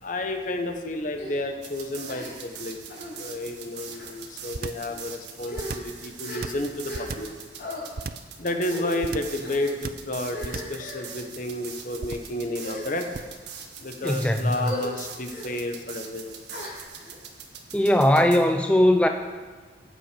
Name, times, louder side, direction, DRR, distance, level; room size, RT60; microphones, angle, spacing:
voice 1, 0.0-2.8 3.2-7.3 8.4-13.1 13.8-16.4, left 1 dB, 50° left, 5 dB, 1.2 m, -31 dB
sound 1, 1.1-1.4 2.0-2.6 2.9-3.2 3.9-4.1 4.8-5.0 5.4-7.3 7.6-7.8 8.6-9.0 9.4-9.7 10.3-11.1 11.8-12.0 12.5-13.2 13.8-14.1 14.5-14.9 15.3-15.5 16.5-17.1, left 1 dB, 65° left, 4.0 m, -38 dB
sound 2, 1.6-18.4, right 7 dB, 80° right, 1.6 m, -43 dB
sound 3, 4.5-4.9 5.5-6.0 6.4-7.4 8.0-8.3 9.0-9.4 9.8-10.1 10.4-10.8 12.0-12.4 13.1-13.4, right 4 dB, 55° right, 0.5 m, -34 dB
voice 2, 14.0-14.7 17.7-19.1, left 1 dB, 5° left, 5 dB, 0.4 m, -20 dB
16.0 x 8.9 x 5.1 m, 1.5 s
head